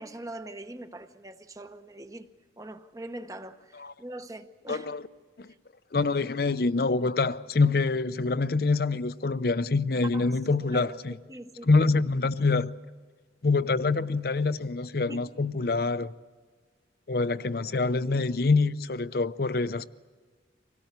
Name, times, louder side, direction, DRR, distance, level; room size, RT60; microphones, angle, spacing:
voice 1, 0.0-2.3 2.6-4.9 6.0-6.1 10.1-11.7 15.1-15.2, right 1 dB, 20° right, 0.9 m, -42 dB
voice 2, 4.7-5.0 5.4-5.5 5.9-11.2 11.6-12.7 13.4-16.1 17.1-19.9, left 3 dB, 55° left, 0.6 m, -25 dB
25.5 x 18.0 x 8.1 m
head